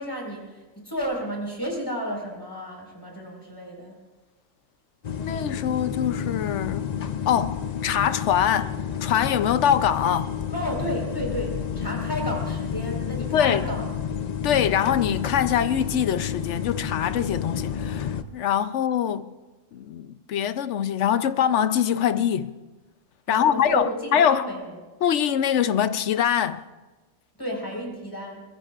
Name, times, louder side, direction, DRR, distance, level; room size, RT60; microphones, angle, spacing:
voice 1, 0.0-3.9 10.5-13.9 23.3-24.7 27.4-28.4, equal, 15° left, 4.6 m, -32 dB
sound 1, 5.0-18.2, left 8 dB, 50° left, 0.5 m, -30 dB
voice 2, 5.2-6.9 7.3-10.3 13.3-13.7 14.4-19.3 19.7-22.5 23.3-24.5 25.0-26.6, left 9 dB, 65° left, 0.9 m, -23 dB
24.0 x 21.0 x 2.5 m
omnidirectional pair, 1.4 m